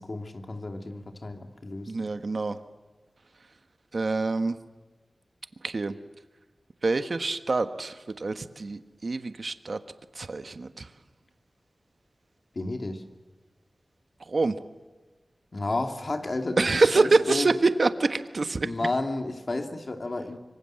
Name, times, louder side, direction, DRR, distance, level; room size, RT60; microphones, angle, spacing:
voice 1, 0.0-2.1 12.5-13.0 15.5-17.5 18.6-20.4, left 2 dB, 50° left, 5 dB, 2.8 m, -32 dB
voice 2, 1.9-2.6 3.9-4.6 5.6-5.9 6.8-9.8 10.1-10.9 14.3-14.6 16.6-18.7, right 3 dB, 65° right, 9 dB, 1.4 m, -25 dB
25.5 x 24.5 x 7.9 m, 1.3 s
wide cardioid pair, 75°, 0 cm